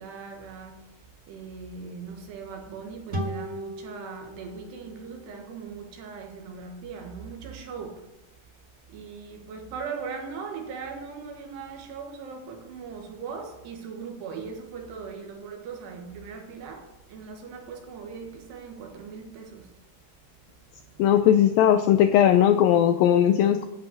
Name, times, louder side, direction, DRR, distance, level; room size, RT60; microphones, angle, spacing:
voice 1, 0.0-8.1 8.9-19.7 20.5-21.1, right 5 dB, 85° right, 3.7 m, -39 dB
sound 1, 3.1-6.5, right 1 dB, 35° right, 1.3 m, -37 dB
voice 2, 21.0-23.7, left 10 dB, 90° left, 2.0 m, -19 dB
11.0 x 5.5 x 7.9 m
omnidirectional pair, 4.7 m